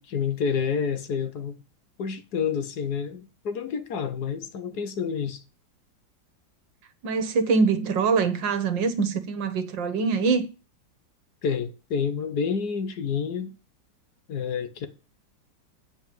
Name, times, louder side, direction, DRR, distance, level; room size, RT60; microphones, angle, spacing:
voice 1, 0.0-1.6 2.0-5.4 11.4-13.6 14.3-14.9, left 6 dB, 60° left, 1.5 m, -29 dB
voice 2, 7.0-10.5, right 5 dB, 80° right, 1.9 m, -24 dB
9.2 x 4.7 x 7.7 m
omnidirectional pair, 2.0 m